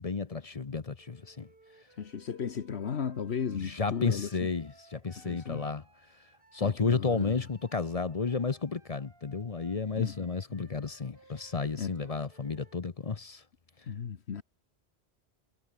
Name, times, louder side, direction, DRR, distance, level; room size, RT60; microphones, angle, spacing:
voice 1, 0.0-1.5 3.6-5.8 6.5-13.4, left 4 dB, 35° left, 0.9 m, -32 dB
Wind instrument woodwind instrument, 1.0-6.8 7.2-12.9, right 3 dB, 55° right, 2.9 m, -60 dB
voice 2, 2.0-4.5 5.2-5.6 6.6-7.4 10.0-10.2 10.5-10.7 11.3-12.0 13.9-14.4, left 7 dB, 75° left, 1.4 m, -36 dB
omnidirectional pair, 1.1 m